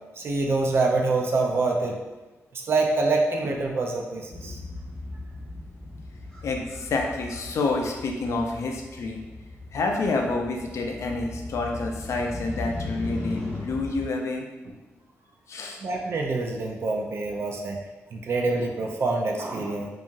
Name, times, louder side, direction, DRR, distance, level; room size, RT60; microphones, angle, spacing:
voice 1, 0.2-2.0 2.5-4.6 15.8-17.8 18.1-19.9, right 3 dB, 50° right, 1 dB, 0.4 m, -26 dB
Motorcycle, 4.3-14.0, left 2 dB, 5° left, 0.9 m, -38 dB
voice 2, 6.4-9.2 9.7-14.5 15.5-15.8, left 3 dB, 65° left, 2 dB, 0.4 m, -28 dB
2.8 x 2.3 x 2.6 m, 1.2 s
wide cardioid pair, 125°, 5 cm